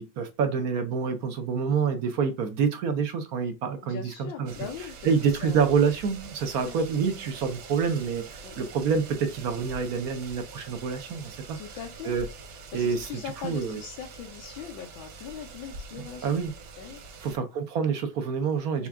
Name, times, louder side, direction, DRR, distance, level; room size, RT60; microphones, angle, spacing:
voice 1, 0.0-4.5 5.0-11.6 12.0-12.3 12.7-13.1 13.4-13.8 16.2-16.5 17.2-18.9, right 6 dB, 60° right, 1.1 m, -27 dB
voice 2, 3.8-5.6 6.6-6.8 8.4-8.7 11.5-12.2 12.7-16.4 16.8-17.0 18.8-18.9, left 8 dB, 85° left, 1.6 m, -41 dB
sound 1, 4.5-17.4, right 4 dB, 90° right, 1.7 m, -44 dB
5.8 x 2.4 x 3.5 m
omnidirectional pair, 2.1 m